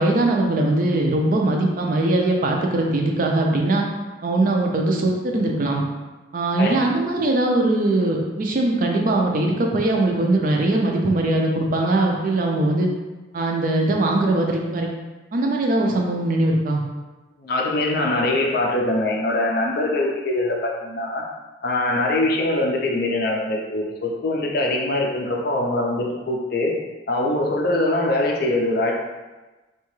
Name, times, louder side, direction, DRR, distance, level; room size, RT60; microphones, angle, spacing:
voice 1, 0.0-3.8 4.2-5.8 6.3-12.9 13.3-14.9 15.3-16.8, right 2 dB, 45° right, 1 dB, 0.4 m, -21 dB
voice 2, 17.4-21.2 21.6-26.7 27.1-28.9, left 2 dB, 50° left, 0 dB, 0.4 m, -23 dB
2.7 x 2.3 x 3.0 m, 1.2 s
head